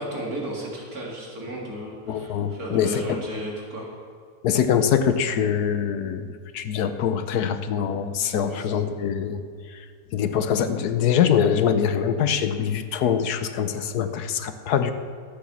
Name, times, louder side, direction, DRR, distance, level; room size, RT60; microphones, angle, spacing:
voice 1, 0.0-3.9 8.3-8.7, equal, 65° right, -3 dB, 3.4 m, -34 dB
voice 2, 2.1-3.2 4.4-9.4 10.1-14.9, left 8 dB, 75° left, 10 dB, 1.3 m, -23 dB
13.5 x 9.5 x 7.2 m, 2.1 s
omnidirectional pair, 1.7 m